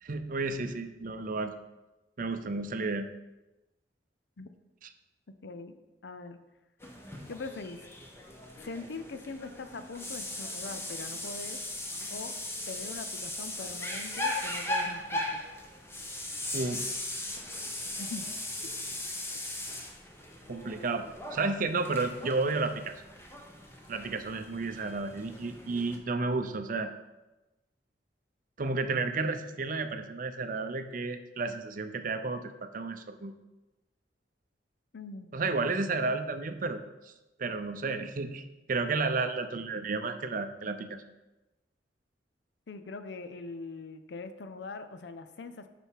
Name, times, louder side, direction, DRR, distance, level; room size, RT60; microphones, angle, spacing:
voice 1, 0.0-1.5 2.2-3.0 16.5-16.9 20.5-23.0 23.9-26.9 28.6-33.3 35.3-36.8 37.4-41.0, right 3 dB, 50° right, 8 dB, 0.6 m, -32 dB
voice 2, 5.4-5.8 6.0-6.4 7.3-7.9 8.6-11.6 12.1-12.3 12.7-15.4 18.0-18.3 34.9-35.4 42.7-45.7, left 3 dB, 75° left, 10 dB, 0.6 m, -42 dB
sound 1, 6.8-26.0, left 1 dB, 15° left, 0.9 m, -38 dB
6.6 x 6.0 x 4.6 m, 1.0 s
head